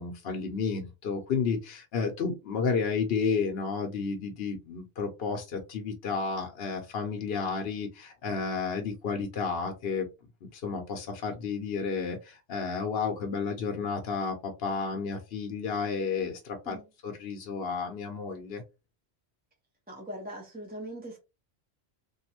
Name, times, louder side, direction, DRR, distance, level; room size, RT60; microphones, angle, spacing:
voice 1, 0.0-10.1 10.4-16.8 17.0-18.6, left 5 dB, 70° left, 0.9 m, -32 dB
voice 2, 19.9-21.2, right 1 dB, 10° right, 0.7 m, -41 dB
2.9 x 2.6 x 2.8 m
omnidirectional pair, 1.1 m